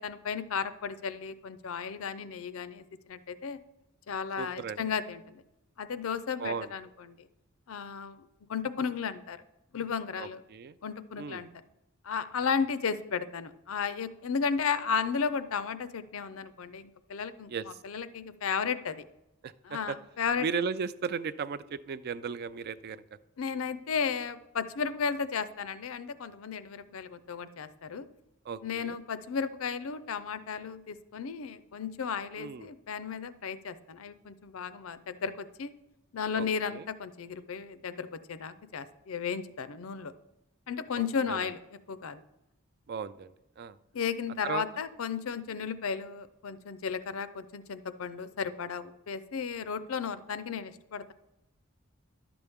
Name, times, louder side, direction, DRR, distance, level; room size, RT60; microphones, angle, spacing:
voice 1, 0.0-3.6 4.1-5.4 5.8-6.9 7.2-7.3 7.7-9.4 9.7-10.4 10.8-11.5 12.0-17.5 17.8-19.0 19.7-20.5 23.4-28.1 28.6-35.7 36.1-40.1 40.7-41.6 41.9-42.2 43.9-51.1, left 6 dB, 75° left, 14 dB, 0.5 m, -34 dB
voice 2, 4.4-4.8 6.4-6.7 10.2-10.8 11.2-11.4 17.5-17.7 19.4-20.0 20.4-23.0 28.4-29.0 32.4-32.7 36.4-36.9 40.9-41.5 42.9-43.8 44.4-44.6, right 6 dB, 50° right, 15 dB, 0.4 m, -36 dB
11.0 x 6.9 x 3.5 m, 0.94 s
head